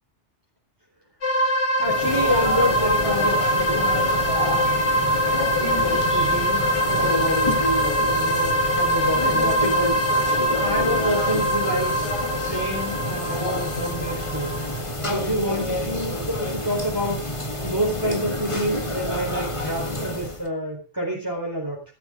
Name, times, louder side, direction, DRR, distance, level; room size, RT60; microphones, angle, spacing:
sound 1, 1.2-14.8, equal, 85° left, 2.1 m, -23 dB
sound 2, 1.8-20.5, left 1 dB, 25° left, 1.8 m, -29 dB
voice 1, 1.8-4.7 5.7-7.5 8.1-10.1 10.6-17.2 17.6-21.8, equal, 15° right, -3 dB, 4.3 m, -28 dB
sound 3, 1.8-7.2, right 4 dB, 45° right, 1.7 m, -39 dB
17.0 x 13.0 x 3.8 m, 0.35 s
omnidirectional pair, 1.2 m